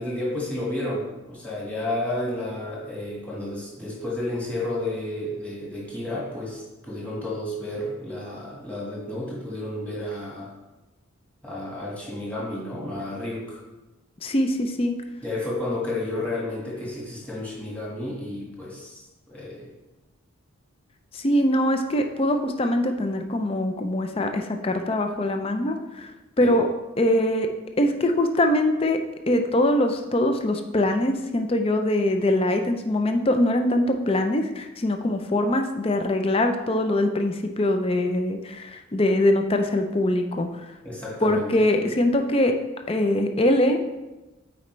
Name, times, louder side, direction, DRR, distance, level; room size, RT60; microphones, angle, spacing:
voice 1, 0.0-10.5 11.4-13.6 15.2-19.7 26.4-26.6 40.8-41.5 41.7-41.8, left 1 dB, 5° left, -5 dB, 1.6 m, -31 dB
voice 2, 14.2-14.9 21.1-26.1 26.4-26.7 27.0-27.5 27.8-29.0 29.3-40.5 41.2-42.6 42.9-44.0, left 1 dB, 25° left, 5 dB, 0.4 m, -23 dB
8.9 x 4.4 x 3.2 m, 1.1 s
head